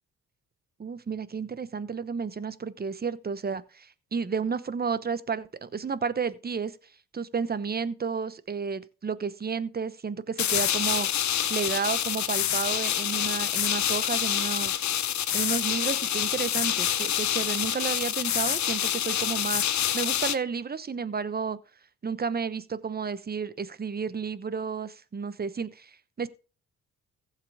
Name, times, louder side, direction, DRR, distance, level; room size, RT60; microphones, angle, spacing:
voice 1, 0.8-6.8 7.1-11.1 11.5-14.8 15.3-21.6 22.0-26.3, right 5 dB, 30° right, 1.0 m, -32 dB
sound 1, 10.4-20.4, left 10 dB, 55° left, 0.9 m, -27 dB
15.0 x 7.6 x 3.5 m
cardioid pair, 85°, 33 cm